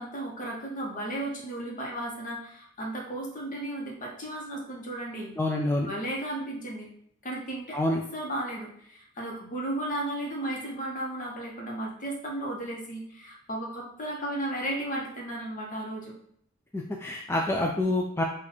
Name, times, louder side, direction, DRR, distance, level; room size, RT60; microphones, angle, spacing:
voice 1, 0.0-5.3 5.9-6.9 7.2-7.8 8.1-16.1, right 1 dB, 40° left, -2 dB, 1.1 m, -34 dB
voice 2, 5.4-5.9 7.7-8.0 16.7-18.2, left 1 dB, 10° left, 0 dB, 0.3 m, -27 dB
4.1 x 2.5 x 4.4 m, 0.66 s
head